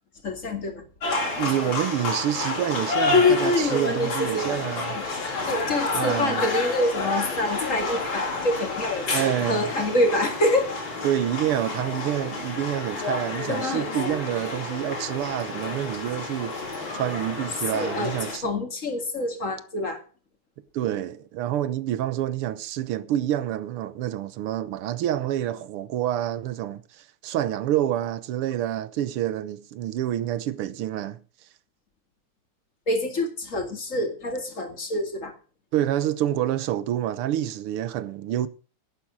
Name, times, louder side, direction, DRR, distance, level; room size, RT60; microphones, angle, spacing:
voice 1, 0.2-0.8 1.7-1.8 3.1-5.0 5.4-10.7 13.5-14.2 17.7-20.0 32.9-35.3, left 2 dB, 35° left, 2.5 m, -26 dB
sound 1, 1.0-18.4, left 3 dB, 60° left, 3.4 m, -30 dB
voice 2, 1.2-5.0 5.9-6.5 9.1-9.7 11.0-16.6 16.9-18.5 20.7-31.2 35.7-38.5, right 12 dB, 80° right, 1.8 m, -27 dB
11.0 x 9.4 x 6.3 m
omnidirectional pair, 2.4 m